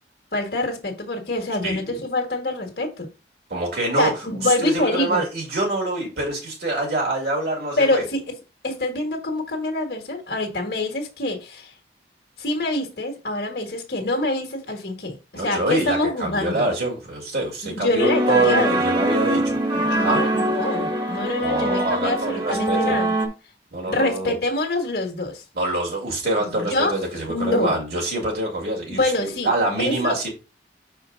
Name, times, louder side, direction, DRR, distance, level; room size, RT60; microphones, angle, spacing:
voice 1, 0.3-3.1 4.0-5.2 7.8-8.2 8.6-11.7 12.4-16.6 17.6-18.8 19.7-23.1 23.9-25.4 26.4-27.0 27.3-27.8 28.9-29.5 29.8-30.3, left 2 dB, 60° left, 1.6 m, -25 dB
voice 2, 1.6-2.0 3.5-8.0 15.3-19.6 20.0-20.2 21.4-23.0 23.7-24.3 25.5-30.3, right 2 dB, 60° right, 2.2 m, -25 dB
sound 1, 18.0-23.3, right 1 dB, 30° right, 1.3 m, -23 dB
6.0 x 4.5 x 3.7 m
head